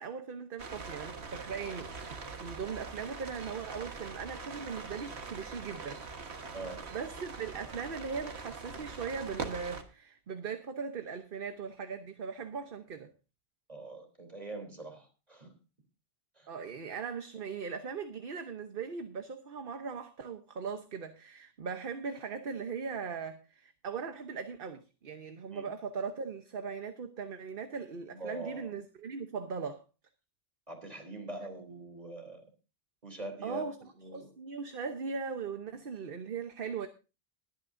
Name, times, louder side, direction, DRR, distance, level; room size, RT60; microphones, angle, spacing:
voice 1, 0.0-6.0 6.9-13.1 16.5-29.8 31.4-31.5 33.4-36.9, right 5 dB, 60° right, 1.1 m, -39 dB
sound 1, 0.6-9.8, right 4 dB, 90° right, 1.7 m, -43 dB
voice 2, 13.7-15.5 16.4-16.5 25.5-25.7 28.1-28.7 30.7-32.4 33.0-33.6 34.0-34.3, right 2 dB, 40° right, 3.5 m, -43 dB
21.5 x 9.3 x 2.6 m
omnidirectional pair, 1.1 m